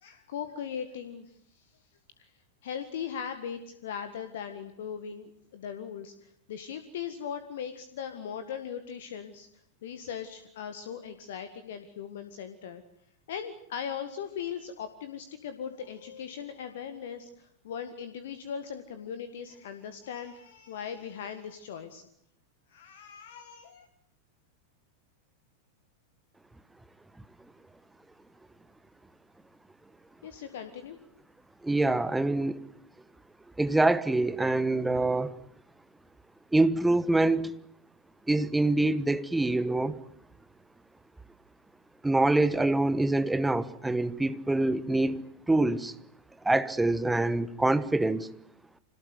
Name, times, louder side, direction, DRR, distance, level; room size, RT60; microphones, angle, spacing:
voice 1, 0.0-1.6 2.2-2.3 2.6-9.5 9.8-12.8 13.3-22.0 22.7-23.9 30.2-31.0, left 7 dB, 55° left, 1.8 m, -39 dB
voice 2, 31.6-32.6 33.6-35.4 36.5-37.6 38.3-40.0 42.0-45.9 46.4-48.3, right 2 dB, 5° right, 1.2 m, -25 dB
26.0 x 19.0 x 9.7 m
figure-of-eight pair, 90°, 0 cm